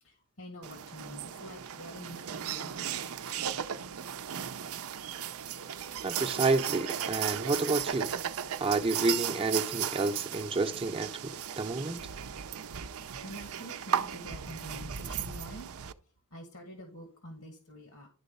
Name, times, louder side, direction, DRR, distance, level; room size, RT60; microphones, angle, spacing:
voice 1, 0.0-4.0 12.7-15.7 16.0-18.1, equal, 85° left, 2.0 m, -48 dB
sound 1, 0.6-15.9, right 9 dB, 70° right, 0.6 m, -36 dB
voice 2, 6.0-8.1 8.6-12.0, right 3 dB, 25° right, 0.7 m, -30 dB
11.5 x 4.0 x 5.4 m
head